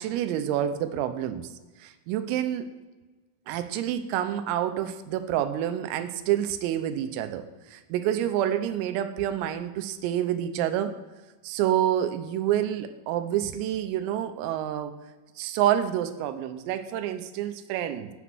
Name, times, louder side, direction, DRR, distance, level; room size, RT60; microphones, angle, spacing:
voice 1, 0.0-1.5 1.8-2.7 3.5-11.0 11.4-14.9 15.4-18.1, right 11 dB, 90° right, 9 dB, 3.5 m, -28 dB
10.0 x 9.2 x 6.1 m, 1.2 s
omnidirectional pair, 5.9 m